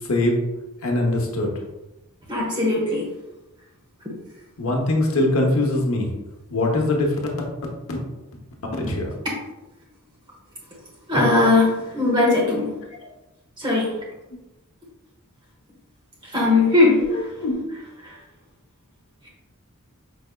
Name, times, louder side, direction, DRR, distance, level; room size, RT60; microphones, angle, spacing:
voice 1, 0.8-1.5 4.6-6.1 6.5-7.2 8.8-9.1 17.4-17.7, left 2 dB, 65° left, 0 dB, 0.9 m, -21 dB
voice 2, 2.3-3.1 11.1-12.7 13.6-14.0 16.2-17.3 18.0-18.2 19.2-19.3, left 2 dB, 20° right, -4 dB, 1.2 m, -19 dB
5.2 x 3.4 x 2.2 m, 0.98 s
head